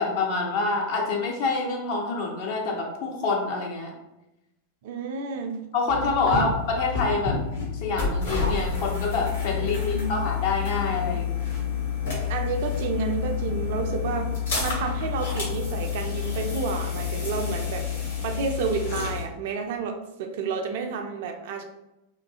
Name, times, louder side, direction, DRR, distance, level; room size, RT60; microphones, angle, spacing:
voice 1, 0.0-3.9 5.7-7.4 7.8-11.4, left 3 dB, 45° left, 0 dB, 0.6 m, -26 dB
voice 2, 4.8-5.6 6.3-6.4 9.6-10.1 11.1-11.2 12.3-14.3 14.6-21.6, right 5 dB, 50° right, 5 dB, 0.3 m, -30 dB
sound 1, 5.9-19.2, left 6 dB, 65° left, 1.1 m, -29 dB
2.6 x 2.4 x 2.3 m, 0.93 s
figure-of-eight pair, 90°, 0 cm